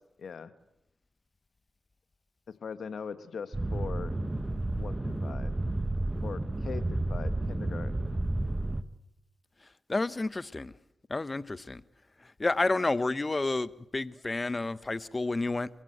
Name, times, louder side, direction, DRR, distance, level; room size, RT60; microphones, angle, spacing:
voice 1, 0.2-0.5 2.6-4.2 4.7-5.5 6.2-8.1, left 6 dB, 70° left, 1.4 m, -41 dB
sound 1, 3.5-8.8, right 2 dB, 20° right, 1.4 m, -31 dB
voice 2, 9.9-10.7 11.1-11.8 12.4-15.7, left 2 dB, 35° left, 1.0 m, -30 dB
28.0 x 15.5 x 8.0 m
supercardioid pair, 50°, 0 cm